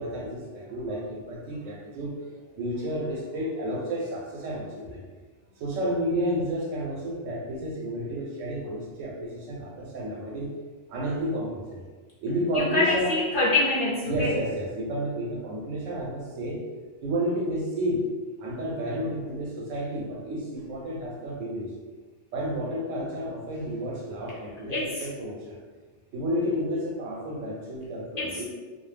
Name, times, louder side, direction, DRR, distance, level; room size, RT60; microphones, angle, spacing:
voice 1, 0.0-5.0 5.6-10.5 10.9-11.8 12.2-13.1 14.0-16.7 17.0-18.1 18.4-21.7 22.3-25.6 26.1-28.4, equal, 85° right, -2 dB, 1.0 m, -31 dB
voice 2, 12.5-14.3 24.7-25.1 28.2-28.4, left 2 dB, 60° left, -6 dB, 0.6 m, -25 dB
2.3 x 2.0 x 3.2 m, 1.4 s
omnidirectional pair, 1.3 m